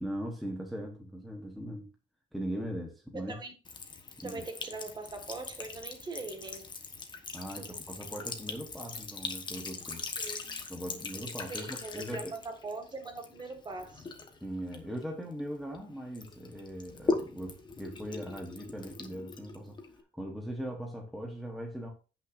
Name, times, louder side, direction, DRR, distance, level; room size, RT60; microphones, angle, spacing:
voice 1, 0.0-1.9 2.3-3.4 4.2-4.4 7.3-10.1 10.7-12.3 14.4-19.8 20.1-21.9, equal, ahead, 1.2 m, -39 dB
voice 2, 3.1-3.5 4.2-6.7 7.6-7.8 10.2-10.6 11.5-14.1, right 3 dB, 25° right, 1.7 m, -41 dB
Sink (filling or washing) / Trickle dribble, 3.6-15.8 16.1-20.0, left 3 dB, 25° left, 1.2 m, -40 dB
16.5 x 6.0 x 2.6 m
cardioid pair, 175°, 18 cm